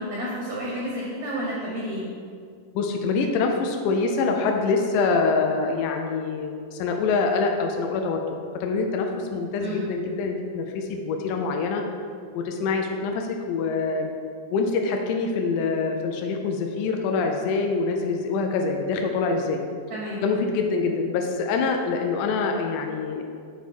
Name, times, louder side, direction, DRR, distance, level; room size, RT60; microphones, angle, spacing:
voice 1, 0.0-2.1 9.6-9.8 19.9-20.2, equal, 80° right, -4 dB, 1.6 m, -31 dB
voice 2, 2.8-8.2 8.6-11.8 12.3-14.1 14.5-19.6 20.2-23.2, left 4 dB, 85° left, 3 dB, 1.8 m, -25 dB
7.8 x 3.5 x 4.2 m, 2.2 s
omnidirectional pair, 4.1 m